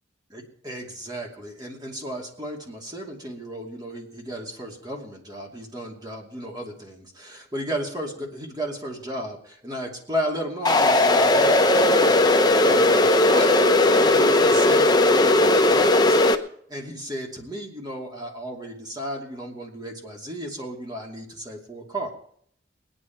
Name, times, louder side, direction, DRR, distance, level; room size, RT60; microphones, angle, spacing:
voice 1, 0.3-12.2 12.6-13.5 14.0-16.2 16.7-22.1, equal, 20° right, 0 dB, 2.7 m, -34 dB
sound 1, 10.6-16.3, left 2 dB, 20° left, 0.9 m, -17 dB
21.0 x 9.6 x 4.6 m, 0.63 s
head